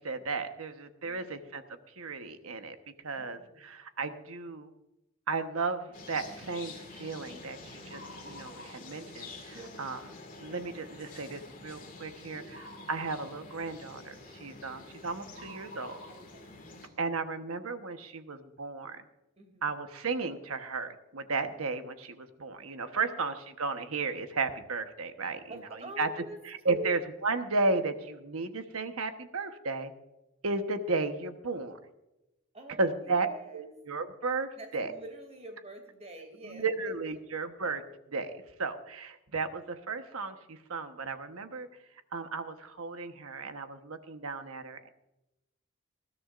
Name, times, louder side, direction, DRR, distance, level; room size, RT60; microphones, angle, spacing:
voice 1, 0.0-1.6 1.9-2.8 3.0-4.7 5.3-10.0 10.4-12.4 12.9-15.9 17.0-19.0 19.6-25.4 26.0-26.1 26.5-29.9 30.4-31.8 32.8-33.3 33.5-34.9 36.4-37.8 38.1-38.3 38.6-41.7 42.1-44.9, right 3 dB, 70° right, 8 dB, 1.2 m, -34 dB
voice 2, 1.0-1.5 3.1-3.8 9.5-10.0 12.3-12.6 14.8-15.0 16.1-16.5 19.4-19.7 22.8-23.2 25.5-26.4 26.7-27.0 32.5-33.8 34.5-36.9, right 1 dB, 30° right, 5 dB, 2.8 m, -46 dB
sound 1, 5.9-16.9, left 2 dB, 40° left, 2.2 m, -47 dB
20.0 x 13.5 x 2.5 m, 0.94 s
head